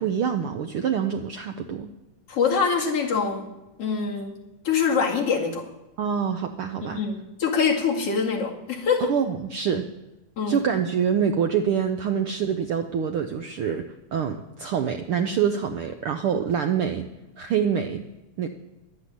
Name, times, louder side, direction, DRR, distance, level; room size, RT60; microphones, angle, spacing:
voice 1, 0.0-1.9 6.0-7.0 9.0-9.9 10.5-13.9 14.1-17.1 17.4-18.0 18.4-18.5, right 7 dB, 75° right, 6 dB, 1.2 m, -25 dB
voice 2, 2.3-3.5 3.8-4.3 4.6-5.6 6.8-9.1 10.4-10.6, left 5 dB, 55° left, -1 dB, 3.1 m, -24 dB
12.0 x 11.5 x 9.8 m, 1.0 s
omnidirectional pair, 3.4 m